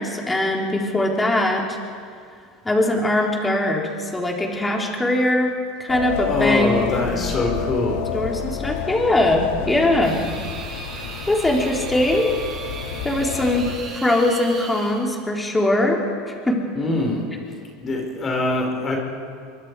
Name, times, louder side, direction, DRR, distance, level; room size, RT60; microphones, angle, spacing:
voice 1, 0.0-1.8 2.6-5.5 5.8-7.3 8.1-10.2 11.3-12.3 13.0-13.7 14.0-16.0 16.5-16.6, left 1 dB, 10° left, 0 dB, 3.6 m, -21 dB
sound 1, 5.9-13.8, left 9 dB, 85° left, 1.9 m, -30 dB
voice 2, 6.2-8.1 9.6-9.9 16.7-17.3 17.8-19.0, left 2 dB, 25° left, 0 dB, 4.6 m, -23 dB
sound 2, 10.0-15.1, right 4 dB, 30° right, 5.7 m, -36 dB
24.5 x 23.5 x 4.8 m, 2.3 s
supercardioid pair, 130°, 0 cm